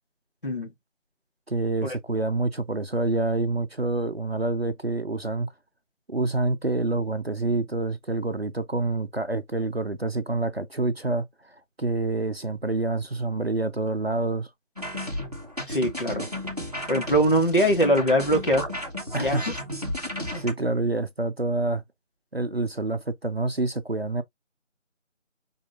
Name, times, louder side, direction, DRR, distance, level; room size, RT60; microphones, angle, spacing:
voice 1, 1.5-5.5 6.1-11.3 11.8-14.5 19.1-19.4 20.4-21.8 22.3-24.2, right 2 dB, 50° right, 0.7 m, -27 dB
sound 1, 14.8-20.5, left 1 dB, 30° right, 1.0 m, -33 dB
voice 2, 15.7-16.3 16.9-18.6 19.1-19.4, equal, 45° left, 1.7 m, -22 dB
5.5 x 3.7 x 2.5 m
figure-of-eight pair, 170°, 38 cm